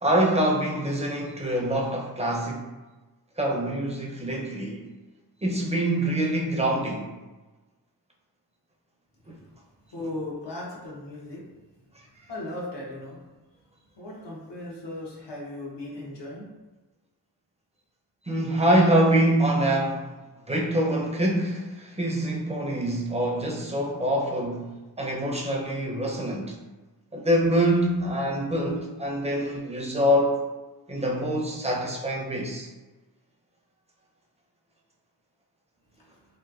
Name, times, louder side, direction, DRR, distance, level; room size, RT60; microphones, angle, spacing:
voice 1, 0.0-2.7 3.4-4.9 5.4-7.1 9.3-9.4 18.3-20.1 20.5-26.6 27.1-30.4 30.9-32.7, right 1 dB, 15° right, -1 dB, 0.5 m, -25 dB
voice 2, 9.9-11.4 12.3-13.2 14.0-16.5, left 1 dB, 75° left, -4 dB, 0.9 m, -37 dB
3.0 x 2.2 x 2.3 m, 1.2 s
wide cardioid pair, 65°, 42 cm